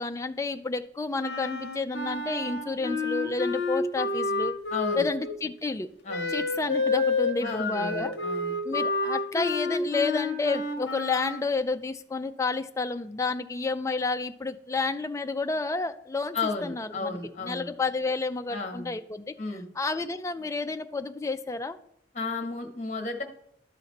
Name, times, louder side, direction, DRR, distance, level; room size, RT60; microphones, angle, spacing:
voice 1, 0.0-4.5 5.0-5.9 6.3-8.1 8.6-16.4 16.6-19.3 19.8-21.8, left 3 dB, 15° left, 8 dB, 0.3 m, -30 dB
Wind instrument woodwind instrument, 1.2-5.4 6.1-11.5, left 3 dB, 55° left, 0.8 m, -29 dB
voice 2, 4.7-5.1 6.0-6.4 7.4-8.6 16.3-17.7 18.5-19.0 19.4-19.6 22.1-23.2, left 3 dB, 35° left, 4 dB, 1.2 m, -33 dB
12.0 x 4.1 x 4.1 m, 0.73 s
head